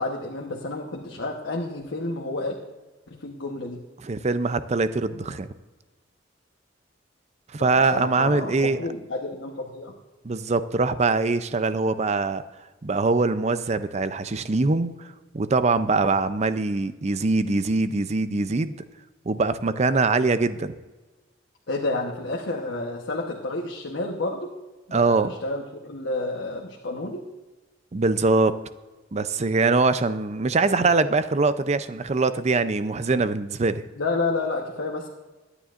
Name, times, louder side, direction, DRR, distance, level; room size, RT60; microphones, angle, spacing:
voice 1, 0.0-2.5 3.1-3.8 7.6-9.9 21.7-24.5 24.9-27.2 33.9-35.1, left 2 dB, 85° left, 0 dB, 1.1 m, -30 dB
voice 2, 4.0-5.5 7.5-8.8 10.2-12.4 12.8-15.1 15.3-18.8 19.3-20.7 24.9-25.4 27.9-28.6 29.1-33.8, right 3 dB, 35° right, 12 dB, 0.5 m, -23 dB
23.0 x 9.8 x 2.5 m, 1.2 s
head